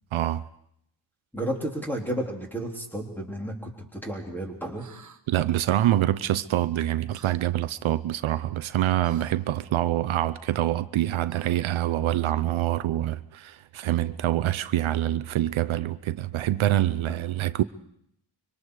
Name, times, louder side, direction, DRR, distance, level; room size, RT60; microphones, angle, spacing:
voice 1, 0.1-0.4 5.3-17.6, right 13 dB, 80° right, 0.8 m, -25 dB
voice 2, 1.3-4.9 17.1-17.2, right 1 dB, 5° left, 3.5 m, -32 dB
sound 1, 4.8-5.2 7.1-7.4 9.0-9.4 11.3-11.8, right 5 dB, 40° right, 1.2 m, -48 dB
25.5 x 24.0 x 4.8 m
wide cardioid pair, 160°, 47 cm